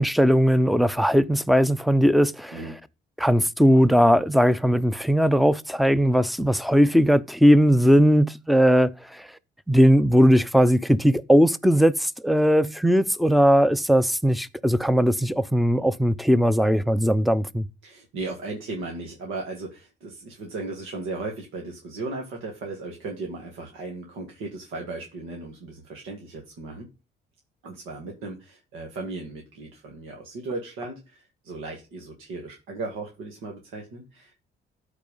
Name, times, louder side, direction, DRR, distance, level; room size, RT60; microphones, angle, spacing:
voice 1, 0.0-2.6 3.2-8.9 9.7-17.6, equal, ahead, 0.6 m, -19 dB
voice 2, 17.8-26.9 27.6-34.4, right 3 dB, 90° right, 2.1 m, -36 dB
13.0 x 4.8 x 5.5 m
cardioid pair, 90°, 20 cm